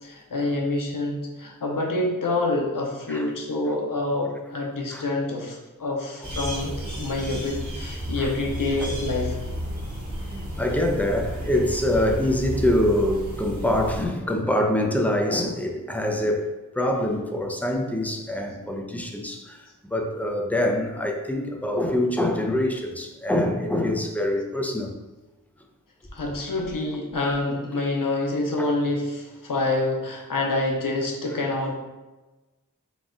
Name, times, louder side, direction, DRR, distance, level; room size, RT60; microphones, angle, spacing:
voice 1, 0.0-9.4 26.1-31.8, left 2 dB, 85° left, 0.6 m, -27 dB
sound 1, 6.2-14.1, equal, 60° right, 1.2 m, -32 dB
voice 2, 10.6-19.6 19.9-24.9 28.6-28.7, left 1 dB, 5° left, 0.5 m, -25 dB
3.9 x 2.3 x 3.7 m
wide cardioid pair, 45°, 32 cm